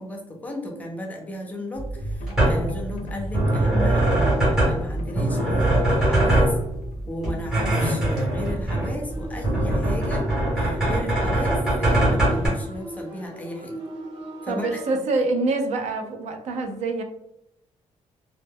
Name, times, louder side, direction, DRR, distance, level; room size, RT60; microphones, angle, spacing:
voice 1, 0.0-6.5 7.1-13.8 14.4-14.8, left 1 dB, 10° left, 1 dB, 0.4 m, -34 dB
sound 1, 1.8-12.5, right 1 dB, 5° right, 1.0 m, -22 dB
sound 2, 1.9-7.8, left 3 dB, 80° left, 0.4 m, -38 dB
sound 3, 9.1-15.0, right 1 dB, 45° right, 0.8 m, -38 dB
voice 2, 14.5-17.0, right 3 dB, 65° right, 5 dB, 0.4 m, -25 dB
2.1 x 2.0 x 3.4 m, 0.82 s
cardioid pair, 165°, 12 cm